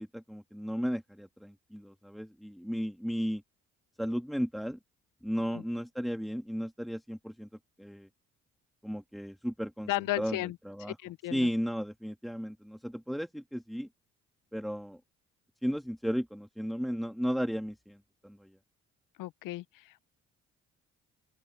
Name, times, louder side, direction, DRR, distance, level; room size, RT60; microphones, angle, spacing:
voice 1, 0.0-3.4 4.0-4.8 5.2-7.5 7.8-8.1 8.8-9.9 10.2-11.0 11.3-13.9 14.5-15.0 15.6-18.6, equal, ahead, 2.2 m, -34 dB
voice 2, 9.9-10.6 11.0-11.5 19.2-20.0, left 17 dB, 70° left, 1.0 m, -34 dB
open air
hypercardioid pair, 50°, 34 cm